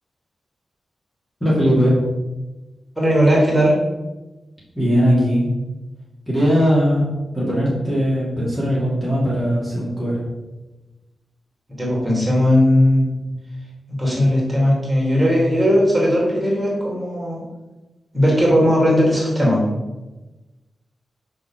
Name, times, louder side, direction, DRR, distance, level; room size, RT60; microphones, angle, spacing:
voice 1, 1.4-2.0 4.7-5.5 6.3-7.0 7.3-10.2, equal, 15° left, -7 dB, 2.6 m, -19 dB
voice 2, 2.9-3.8 11.8-13.1 13.9-17.4 18.1-19.6, equal, 5° right, -5 dB, 3.1 m, -17 dB
7.7 x 5.9 x 6.3 m, 1.1 s
wide cardioid pair, 145°, 0 cm